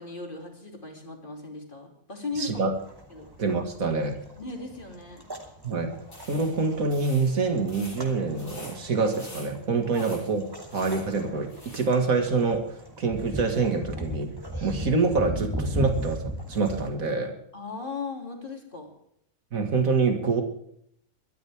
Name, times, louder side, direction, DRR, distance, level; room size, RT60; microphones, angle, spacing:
voice 1, 0.0-2.7 3.1-3.3 4.4-5.2 9.9-10.1 17.5-18.9, left 3 dB, 40° left, 1 dB, 3.5 m, -37 dB
voice 2, 2.4-2.7 3.4-4.2 5.6-5.9 6.3-10.5 10.7-14.3 14.6-17.3 19.5-20.4, right 4 dB, 85° right, 5 dB, 2.4 m, -26 dB
sound 1, 2.7-16.9, equal, 15° right, 2.6 m, -38 dB
sound 2, 6.0-11.9, left 1 dB, 85° left, 5.6 m, -48 dB
23.0 x 13.5 x 3.5 m, 0.70 s
omnidirectional pair, 1.4 m